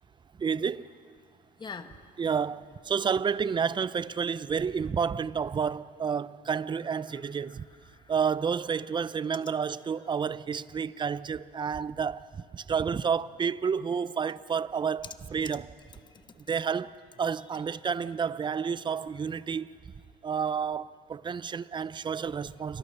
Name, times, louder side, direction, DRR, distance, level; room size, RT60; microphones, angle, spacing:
voice 1, 0.4-0.9 2.2-7.6 8.1-15.0 15.3-15.7 16.5-19.8 20.2-22.8, right 6 dB, 25° right, 0.6 m, -30 dB
voice 2, 1.6-2.1 6.9-8.1 9.1-9.7 15.0-15.1 16.1-16.4 17.4-17.5, left 5 dB, 25° left, 1.4 m, -47 dB
28.5 x 23.0 x 6.7 m
cardioid pair, 110°, 17 cm